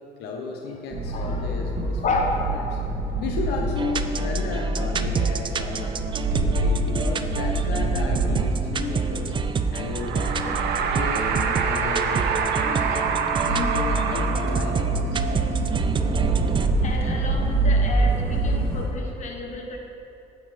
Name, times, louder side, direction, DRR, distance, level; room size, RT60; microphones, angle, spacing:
voice 1, 0.2-2.8 3.2-5.9 6.4-9.4 9.7-10.6 10.9-13.0 13.5-15.7, left 4 dB, 80° left, 1 dB, 0.9 m, -34 dB
sound 1, 0.9-18.9, right 2 dB, 60° right, 1.8 m, -26 dB
voice 2, 1.1-1.5 2.0-2.9 16.8-19.8, left 3 dB, 45° left, 1 dB, 1.3 m, -30 dB
sound 2, 3.8-16.7, right 5 dB, 30° right, 0.4 m, -29 dB
sound 3, 9.9-15.0, right 6 dB, 80° right, 0.7 m, -27 dB
9.5 x 6.9 x 4.1 m, 2.9 s
cardioid pair, 110°, 17 cm